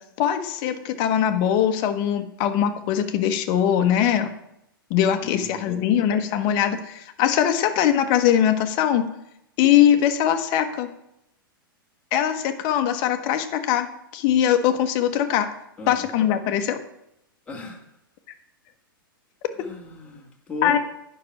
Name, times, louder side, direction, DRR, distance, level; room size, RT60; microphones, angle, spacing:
voice 1, 0.2-4.3 4.9-9.0 9.6-10.9 12.1-13.9 14.1-15.5 15.9-16.8 20.6-20.8, left 10 dB, 40° left, 7 dB, 1.1 m, -21 dB
voice 2, 5.2-5.8 15.8-16.1 17.5-17.8 19.6-20.8, left 3 dB, 10° left, -2 dB, 2.0 m, -36 dB
9.5 x 6.1 x 5.5 m, 0.81 s
figure-of-eight pair, 105°, 12 cm